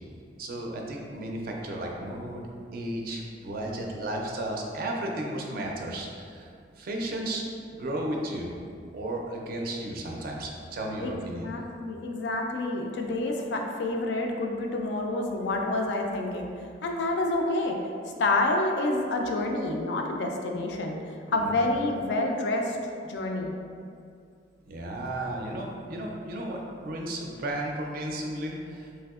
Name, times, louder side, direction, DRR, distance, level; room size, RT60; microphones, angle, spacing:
voice 1, 0.4-2.4 2.7-6.5 6.8-7.4 7.7-8.5 8.9-11.4 21.3-21.6 24.7-28.9, right 1 dB, 55° right, 0 dB, 0.4 m, -34 dB
voice 2, 11.4-16.5 16.8-17.9 18.2-21.0 21.3-22.8 23.1-23.5, left 2 dB, 65° left, 2 dB, 0.3 m, -28 dB
3.2 x 2.7 x 2.4 m, 2.4 s
head